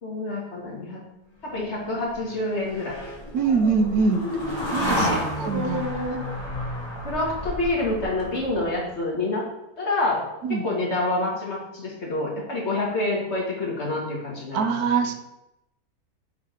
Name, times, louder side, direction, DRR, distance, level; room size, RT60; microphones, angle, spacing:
voice 1, 0.0-1.0 1.4-3.0 5.0-6.2 7.0-9.4 9.8-10.2 10.5-15.1, left 2 dB, 45° left, -3 dB, 2.2 m, -27 dB
sound 1, 1.5-8.9, left 1 dB, 15° left, 1.6 m, -31 dB
voice 2, 3.3-4.2 4.7-5.8 6.1-6.2 10.4-10.6 14.5-15.1, right 5 dB, 75° right, 8 dB, 1.2 m, -23 dB
8.3 x 4.8 x 5.0 m, 0.90 s
omnidirectional pair, 1.6 m